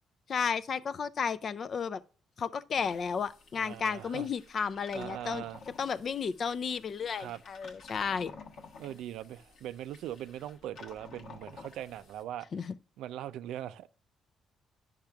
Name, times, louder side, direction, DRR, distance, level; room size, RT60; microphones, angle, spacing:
voice 1, 0.3-2.0 2.4-5.4 5.8-8.3 12.5-12.7, left 6 dB, 50° left, 0.4 m, -33 dB
sound 1, 2.7-12.2, left 4 dB, 70° left, 1.2 m, -52 dB
voice 2, 3.6-4.3 4.9-5.6 7.2-7.4 8.8-12.5 13.0-13.9, right 12 dB, 85° right, 0.4 m, -41 dB
10.0 x 5.8 x 2.2 m
cardioid pair, 90°, 0 cm